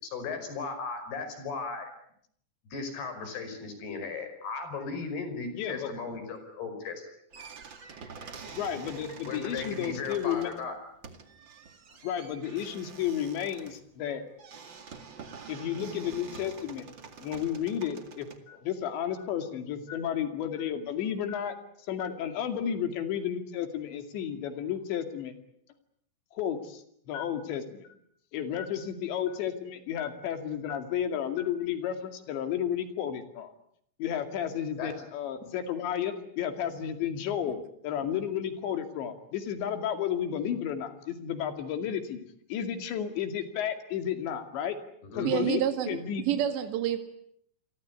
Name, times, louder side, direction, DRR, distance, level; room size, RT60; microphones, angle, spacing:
voice 1, 0.0-1.9 2.7-7.1 9.3-10.8 22.6-22.7 34.8-35.0 45.0-45.3, left 4 dB, 65° left, 8 dB, 7.2 m, -36 dB
voice 2, 5.5-5.9 8.5-10.5 12.0-14.2 15.5-16.9 17.2-21.6 21.9-25.3 26.3-27.9 28.3-33.5 34.0-42.2 42.5-44.8 45.1-45.6 45.9-46.3, left 9 dB, 85° left, 7 dB, 4.6 m, -32 dB
sound 1, 7.3-18.4, right 5 dB, 40° right, 1.9 m, -47 dB
voice 3, 45.2-46.0 46.3-47.0, right 11 dB, 80° right, 7 dB, 4.2 m, -28 dB
29.0 x 23.5 x 8.3 m, 0.69 s
omnidirectional pair, 5.0 m